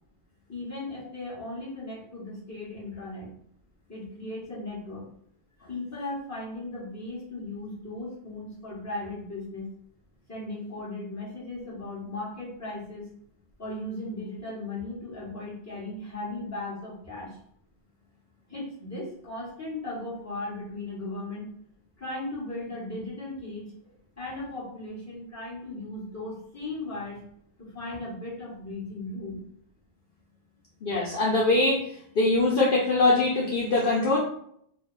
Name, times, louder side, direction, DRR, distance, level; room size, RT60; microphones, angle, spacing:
voice 1, 0.5-3.3 3.9-5.1 5.7-9.7 10.3-13.1 13.6-17.4 18.5-21.5 22.0-23.7 24.2-27.2 27.6-29.4, left 2 dB, 15° left, -8 dB, 1.3 m, -37 dB
voice 2, 30.8-31.8 32.2-34.2, left 2 dB, 60° left, -4 dB, 0.8 m, -22 dB
2.9 x 2.2 x 3.8 m, 0.66 s
omnidirectional pair, 1.1 m